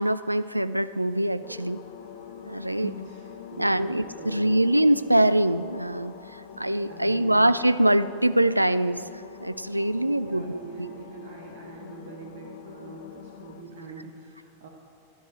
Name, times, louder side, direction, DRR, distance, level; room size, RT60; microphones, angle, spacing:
voice 1, 0.0-1.8 2.4-2.9 3.6-9.0 9.4-10.9, right 1 dB, 85° right, 14 dB, 0.4 m, -23 dB
sound 1, 1.4-13.6, left 8 dB, 55° left, 0.9 m, -44 dB
voice 2, 2.7-4.6 6.9-7.4 10.0-14.7, right 3 dB, 60° right, -1 dB, 1.4 m, -43 dB
12.5 x 12.5 x 5.0 m, 2.3 s
figure-of-eight pair, 90°, 0 cm